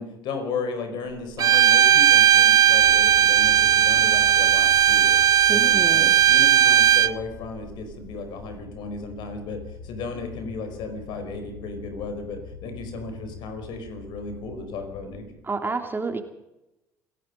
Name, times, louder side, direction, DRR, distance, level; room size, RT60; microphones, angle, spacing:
voice 1, 0.0-5.2 5.4-15.3, left 3 dB, 55° left, 6 dB, 5.0 m, -35 dB
Bowed string instrument, 1.4-7.1, right 10 dB, 40° right, 0.9 m, -17 dB
sound 1, 2.8-15.3, left 5 dB, 75° left, 3.7 m, -43 dB
voice 2, 5.5-6.1 15.5-16.2, right 4 dB, 20° right, 6 dB, 2.8 m, -29 dB
27.5 x 18.0 x 5.4 m, 0.92 s
figure-of-eight pair, 55°, 9 cm